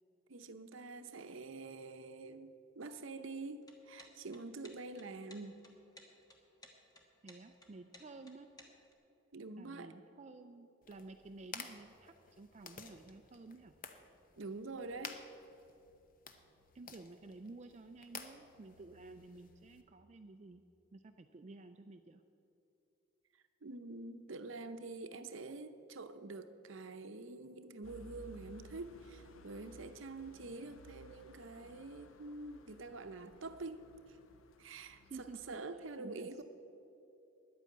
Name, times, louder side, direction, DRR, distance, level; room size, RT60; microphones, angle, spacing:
voice 1, 0.3-5.6 9.3-9.9 14.4-15.2 23.6-34.2 34.6-36.4, right 3 dB, 70° right, 10 dB, 0.7 m, -46 dB
sound 1, 3.5-8.9, left 1 dB, 20° left, 1.2 m, -59 dB
voice 2, 7.2-8.5 9.6-13.8 16.7-20.6 20.9-22.2 35.1-36.4, right 3 dB, 35° right, 8 dB, 0.3 m, -53 dB
sound 2, 10.8-19.8, left 5 dB, 40° left, 0.8 m, -53 dB
sound 3, 27.8-35.5, left 1 dB, 75° left, 0.7 m, -58 dB
10.5 x 9.1 x 8.5 m, 2.9 s
head